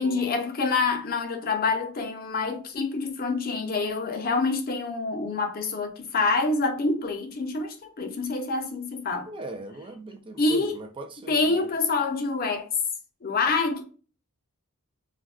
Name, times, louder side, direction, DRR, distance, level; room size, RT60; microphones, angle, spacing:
voice 1, 0.0-9.3 10.4-10.7 11.3-12.7 13.2-13.8, left 3 dB, 40° left, 0.6 m, -26 dB
voice 2, 9.3-11.7, right 2 dB, 25° right, 0.4 m, -39 dB
2.4 x 2.2 x 3.5 m
head